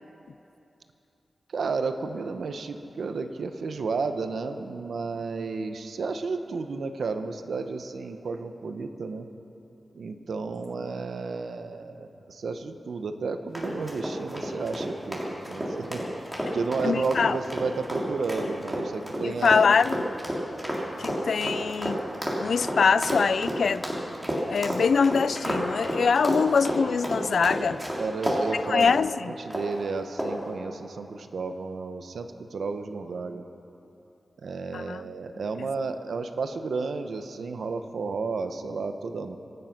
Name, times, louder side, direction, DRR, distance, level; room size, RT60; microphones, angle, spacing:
voice 1, 1.5-9.3 9.9-15.2 15.5-16.1 16.5-19.7 28.0-29.0 29.3-33.4 34.4-39.4, right 4 dB, 90° right, 8 dB, 0.9 m, -32 dB
sound 1, 13.5-28.4 28.8-29.0 29.5-29.8 30.2-30.5, equal, 10° right, 3.4 m, -30 dB
voice 2, 16.8-17.4 19.2-20.0 21.0-22.0 22.4-23.9 24.5-27.8 28.5-29.3 34.7-35.0 35.6-35.7, left 5 dB, 85° left, 16 dB, 0.3 m, -23 dB
25.0 x 9.5 x 5.9 m, 2.8 s
wide cardioid pair, 100°, 0 cm